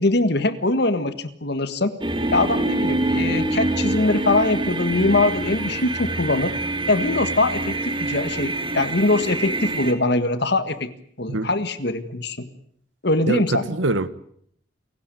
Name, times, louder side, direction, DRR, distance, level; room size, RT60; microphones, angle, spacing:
voice 1, 0.0-1.9 2.3-6.5 6.9-10.9 11.2-12.5 13.0-13.7, left 2 dB, 60° left, 1.7 m, -22 dB
sound 1, 2.0-9.9, right 2 dB, 25° right, 2.5 m, -25 dB
voice 2, 13.3-14.1, right 2 dB, 85° right, 1.4 m, -24 dB
29.0 x 17.0 x 9.2 m
head